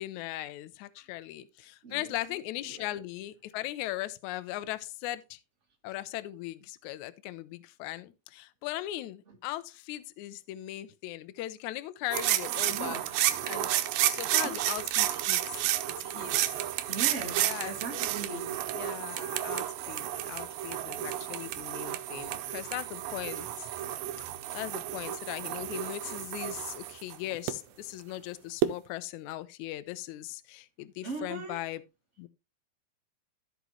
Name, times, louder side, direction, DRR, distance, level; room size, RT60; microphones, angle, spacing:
voice 1, 0.0-5.4 5.8-13.0 13.4-13.7 14.1-15.7 16.0-16.3 17.4-18.1 18.7-23.7 24.5-31.8 32.2-32.3, left 15 dB, 80° left, 1.7 m, -39 dB
sound 1, 12.1-27.5 28.6-28.7, right 13 dB, 85° right, 2.5 m, -31 dB
voice 2, 12.7-13.2 14.4-14.8 16.9-18.6 31.0-31.6, right 3 dB, 45° right, 0.9 m, -39 dB
14.5 x 5.2 x 3.0 m
omnidirectional pair, 4.1 m